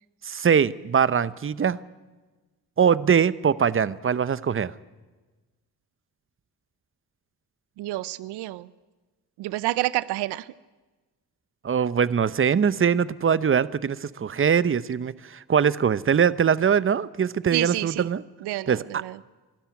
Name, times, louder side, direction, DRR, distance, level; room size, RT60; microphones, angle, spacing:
voice 1, 0.2-1.8 2.8-4.7 11.6-18.2 18.7-19.0, right 7 dB, 30° right, 18 dB, 0.8 m, -22 dB
voice 2, 7.8-8.7 9.4-10.5 17.5-18.1 18.4-19.2, right 17 dB, 85° right, 19 dB, 0.6 m, -29 dB
22.5 x 12.5 x 9.5 m, 1.3 s
supercardioid pair, 55°, 39 cm